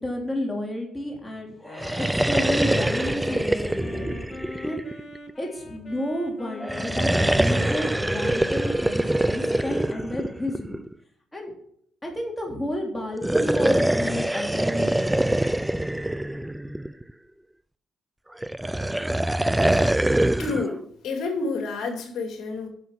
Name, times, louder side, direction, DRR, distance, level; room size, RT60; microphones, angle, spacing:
voice 1, 0.0-4.1 4.6-4.8 5.4-10.8 11.3-11.5 12.0-15.2, left 1 dB, 10° left, 0 dB, 3.4 m, -31 dB
Wind instrument woodwind instrument, 1.5-10.5, left 3 dB, 30° left, 2.3 m, -41 dB
sound 1, 1.7-5.3 6.6-10.9 13.1-17.1 18.4-20.7, right 1 dB, 5° right, 0.4 m, -24 dB
voice 2, 20.4-22.7, left 3 dB, 70° left, 3 dB, 2.5 m, -29 dB
11.0 x 6.6 x 5.9 m, 0.67 s
cardioid pair, 90°, 0 cm